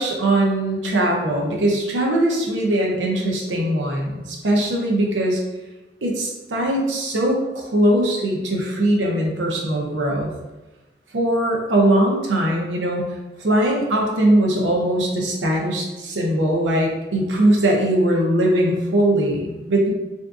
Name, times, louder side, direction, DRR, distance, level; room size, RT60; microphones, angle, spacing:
voice 1, 0.0-5.4 6.0-10.3 11.1-13.0 13.4-19.9, right 1 dB, 85° right, 0 dB, 0.6 m, -20 dB
3.5 x 2.7 x 2.3 m, 1.1 s
head